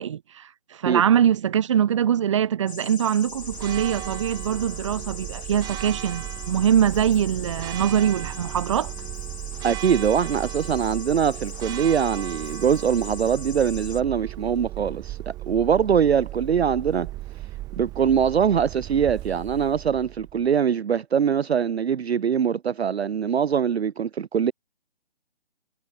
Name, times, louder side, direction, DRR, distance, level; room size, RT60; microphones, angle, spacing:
voice 1, 0.0-8.9, right 9 dB, 25° right, 1.2 m, -23 dB
sound 1, 2.7-14.0, left 4 dB, 70° left, 5.8 m, -41 dB
Church bell, 3.3-20.5, right 16 dB, 10° right, 2.9 m, -36 dB
voice 2, 9.6-17.1 17.8-24.5, right 7 dB, 65° right, 0.5 m, -23 dB
figure-of-eight pair, 150°, 34 cm